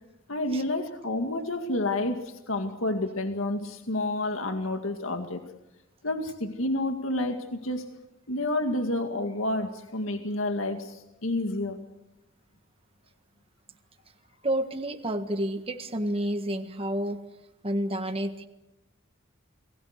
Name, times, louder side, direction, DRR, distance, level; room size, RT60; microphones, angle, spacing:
voice 1, 0.3-5.4 6.0-7.8 8.3-11.8, left 2 dB, 85° left, 5 dB, 2.2 m, -29 dB
voice 2, 14.4-17.2 17.6-18.5, right 1 dB, 30° right, 5 dB, 1.6 m, -29 dB
29.5 x 20.5 x 6.7 m, 0.93 s
head